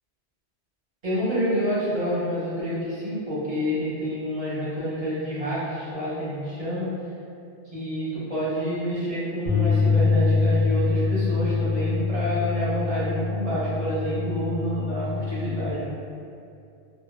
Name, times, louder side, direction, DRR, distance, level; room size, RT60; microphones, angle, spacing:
voice 1, 1.0-6.9 7.6-15.8, equal, 35° right, -10 dB, 0.7 m, -28 dB
sound 1, 9.5-15.7, left 4 dB, 50° left, 0.5 m, -24 dB
2.1 x 2.1 x 3.2 m, 2.5 s
omnidirectional pair, 1.2 m